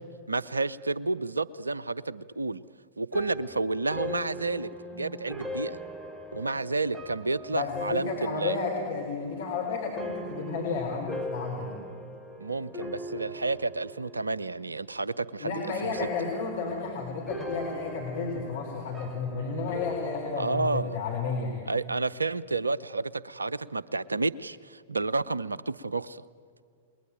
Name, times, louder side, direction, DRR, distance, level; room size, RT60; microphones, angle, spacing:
voice 1, 0.3-2.6 3.0-5.8 6.3-8.6 12.4-15.5 15.8-15.9 20.4-21.0 21.7-26.2, right 3 dB, 80° right, 19 dB, 0.6 m, -30 dB
sound 1, 3.1-14.6 14.9-15.5 15.9-21.3, left 1 dB, ahead, 2.1 m, -40 dB
voice 2, 7.5-11.8 15.4-21.7, left 5 dB, 60° left, 0 dB, 4.3 m, -32 dB
29.0 x 21.0 x 9.1 m, 2.2 s
figure-of-eight pair, 100°, 0 cm